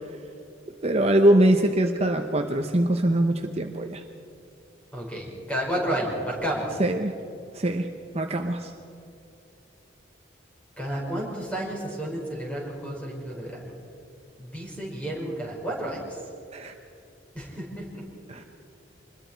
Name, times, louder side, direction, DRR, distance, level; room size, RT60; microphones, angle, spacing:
voice 1, 0.8-4.0 6.8-7.1 7.5-7.9 8.1-8.7 16.5-16.7 18.3-18.4, right 1 dB, 35° right, 4 dB, 0.9 m, -22 dB
voice 2, 4.9-6.8 10.8-13.6 14.4-16.2 17.3-18.0, right 1 dB, 5° left, -3 dB, 5.6 m, -31 dB
27.0 x 21.5 x 4.6 m, 2.7 s
head